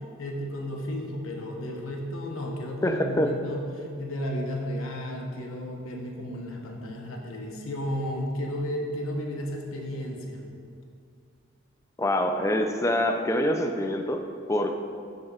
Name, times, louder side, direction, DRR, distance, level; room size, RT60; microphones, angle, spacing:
voice 1, 0.2-10.4, equal, 80° left, 0 dB, 0.9 m, -33 dB
voice 2, 2.8-3.3 12.0-14.8, left 1 dB, 15° left, 4 dB, 0.3 m, -25 dB
11.5 x 5.4 x 2.4 m, 2.3 s
head